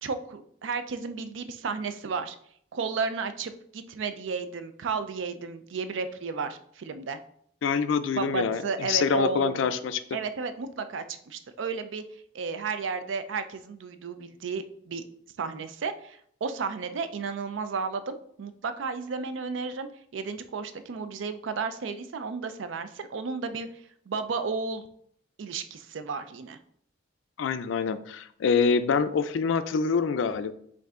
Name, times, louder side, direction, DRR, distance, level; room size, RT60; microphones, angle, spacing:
voice 1, 0.0-2.4 2.7-7.2 8.1-9.6 10.1-12.0 12.3-15.0 15.4-23.7 24.1-24.8 25.4-26.6, right 4 dB, 85° right, 10 dB, 0.4 m, -33 dB
voice 2, 7.6-10.0 27.4-30.5, left 5 dB, 90° left, 11 dB, 0.4 m, -26 dB
5.4 x 2.6 x 3.6 m, 0.66 s
head